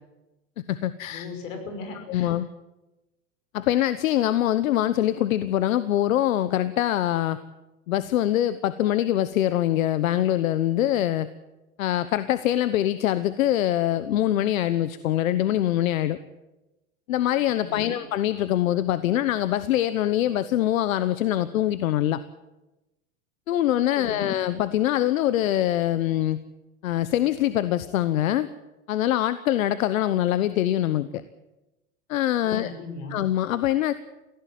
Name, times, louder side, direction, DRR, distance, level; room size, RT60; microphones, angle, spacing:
voice 1, 0.6-1.3 2.1-2.5 3.5-7.4 7.9-11.3 11.8-16.2 17.1-22.2 23.5-26.4 26.8-28.5 28.9-31.2 32.1-32.7 33.1-33.9, left 12 dB, 90° left, 14 dB, 1.1 m, -24 dB
voice 2, 1.1-2.3 17.6-18.0 24.0-24.3 32.4-33.2, left 3 dB, 70° left, 6 dB, 6.0 m, -37 dB
18.5 x 16.5 x 9.3 m, 1.0 s
supercardioid pair, 155°, 39 cm